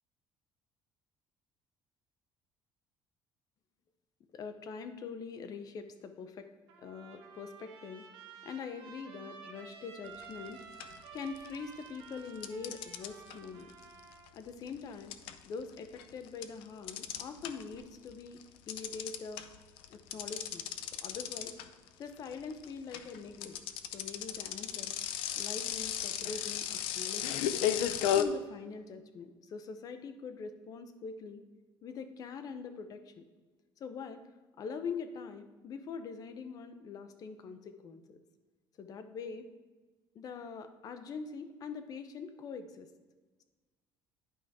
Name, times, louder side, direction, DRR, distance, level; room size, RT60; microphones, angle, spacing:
voice 1, 4.3-6.5 6.8-8.1 8.4-10.6 11.1-13.7 14.3-15.1 15.4-18.4 18.7-19.4 19.9-20.6 21.0-21.5 22.0-23.6 23.9-25.0 25.4-27.5 28.1-31.4 31.8-33.2 33.8-34.2 34.6-38.2 38.8-39.5 40.1-42.9, left 5 dB, 45° left, 9 dB, 0.7 m, -43 dB
Trumpet, 6.7-14.3, right 6 dB, 75° right, 1.4 m, -52 dB
sound 1, 10.2-10.5 10.8-11.7 12.4-17.8 18.1-28.2, left 10 dB, 90° left, 0.5 m, -35 dB
11.0 x 5.0 x 3.6 m, 1.3 s
cardioid pair, 140°, 9 cm